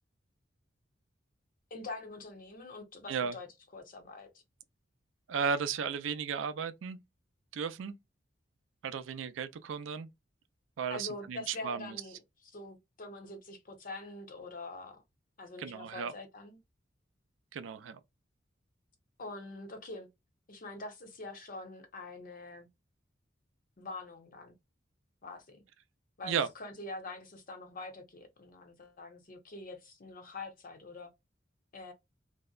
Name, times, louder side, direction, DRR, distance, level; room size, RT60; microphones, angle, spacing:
voice 1, 1.7-3.5 3.7-4.3 10.9-12.2 12.4-15.0 15.4-16.6 19.2-20.1 20.5-22.7 23.8-24.5 25.2-25.6 26.2-31.1 31.7-31.9, left 2 dB, 50° left, 0.7 m, -45 dB
voice 2, 5.3-7.0 7.5-7.9 8.8-10.1 10.8-12.0 15.6-16.1 17.5-18.0 26.2-26.5, right 6 dB, 85° right, 0.4 m, -34 dB
2.6 x 2.1 x 2.3 m
head